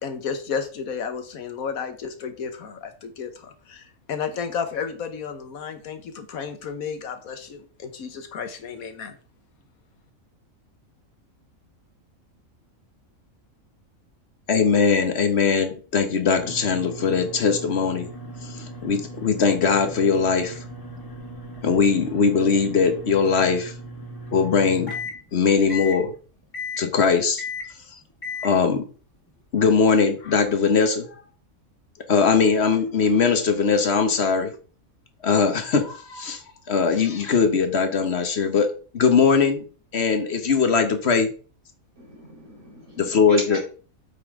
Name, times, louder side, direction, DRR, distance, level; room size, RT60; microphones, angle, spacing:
voice 1, 0.0-9.2, left 6 dB, 85° left, 8 dB, 1.5 m, -32 dB
voice 2, 14.5-18.1 18.4-20.6 21.6-23.7 24.3-24.9 25.3-26.1 26.8-27.4 28.4-28.8 29.5-31.1 32.1-34.5 35.2-38.7 38.9-39.6 39.9-41.3 43.0-43.6, left 5 dB, 50° left, 8 dB, 1.2 m, -20 dB
sound 1, 16.4-25.2 25.7-26.0 26.5-26.9 27.4-27.7 28.2-28.5, left 2 dB, 15° left, 1.8 m, -37 dB
voice 3, 42.0-43.6, right 1 dB, 85° right, -1 dB, 3.2 m, -37 dB
8.2 x 5.6 x 3.6 m, 0.39 s
omnidirectional pair, 1.4 m